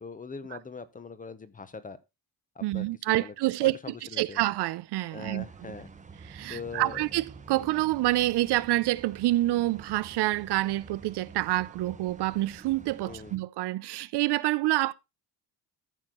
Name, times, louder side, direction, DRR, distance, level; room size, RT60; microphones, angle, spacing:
voice 1, 0.0-2.0 2.5-3.3 3.6-4.4 5.1-5.9 6.5-7.0 7.6-7.7 13.0-13.4, left 4 dB, 20° left, 0.9 m, -42 dB
voice 2, 2.6-3.8 4.2-5.7 6.3-14.9, right 17 dB, 75° right, 0.6 m, -27 dB
sound 1, 5.4-13.4, right 5 dB, 20° right, 0.9 m, -49 dB
13.5 x 6.5 x 3.8 m
cardioid pair, 155°, 41 cm